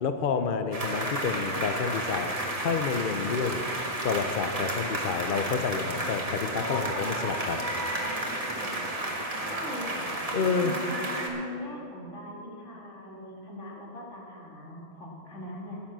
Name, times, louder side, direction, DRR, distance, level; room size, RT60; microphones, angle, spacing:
voice 1, 0.0-3.7 4.0-7.7 10.3-10.7, left 5 dB, 50° left, 8 dB, 0.7 m, -29 dB
sound 1, 0.7-11.3, right 1 dB, 30° right, 1.5 m, -32 dB
voice 2, 9.5-10.1 10.4-15.8, left 1 dB, 80° left, -3 dB, 2.7 m, -40 dB
10.0 x 9.9 x 7.4 m, 2.7 s
omnidirectional pair, 1.2 m